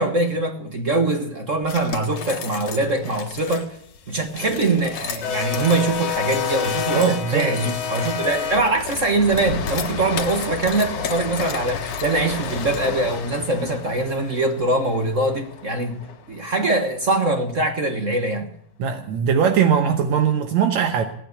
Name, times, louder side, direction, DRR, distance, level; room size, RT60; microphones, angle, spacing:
voice 1, 0.0-3.8 4.1-16.0 16.3-18.5, right 2 dB, 45° right, 1.0 m, -23 dB
sound 1, 1.6-3.7 4.3-13.1, left 7 dB, 70° left, 2.7 m, -35 dB
sound 2, 4.0-16.1, left 7 dB, 90° left, 3.4 m, -30 dB
voice 2, 6.9-7.5 18.8-21.1, right 7 dB, 75° right, 2.3 m, -20 dB
18.5 x 9.2 x 7.9 m
omnidirectional pair, 3.3 m